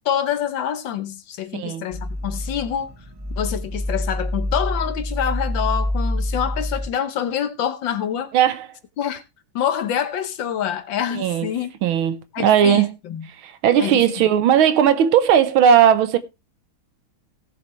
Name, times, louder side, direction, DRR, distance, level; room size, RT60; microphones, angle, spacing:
voice 1, 0.0-2.9 3.4-8.3 9.0-9.2 9.5-11.7 12.3-13.3 13.8-14.0, left 9 dB, 65° left, 1.5 m, -26 dB
voice 2, 1.5-1.9 8.3-8.7 11.1-11.5 11.8-13.0 13.3-16.2, right 9 dB, 75° right, 1.6 m, -17 dB
sound 1, 1.9-6.9, left 1 dB, 20° right, 0.7 m, -26 dB
17.5 x 7.0 x 3.1 m
omnidirectional pair, 2.4 m